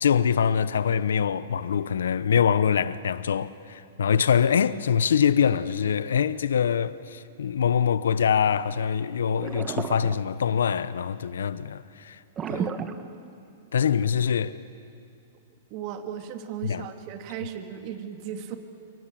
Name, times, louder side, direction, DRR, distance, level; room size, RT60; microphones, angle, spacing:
voice 1, 0.0-12.2 12.5-12.6 13.7-14.6 16.6-16.8, left 7 dB, 85° left, 0.9 m, -24 dB
sound 1, 9.4-10.7 12.4-13.7, right 7 dB, 25° right, 1.5 m, -33 dB
voice 2, 15.7-18.6, right 9 dB, 45° right, 2.7 m, -36 dB
27.5 x 24.5 x 7.7 m
hypercardioid pair, 130°, 0 cm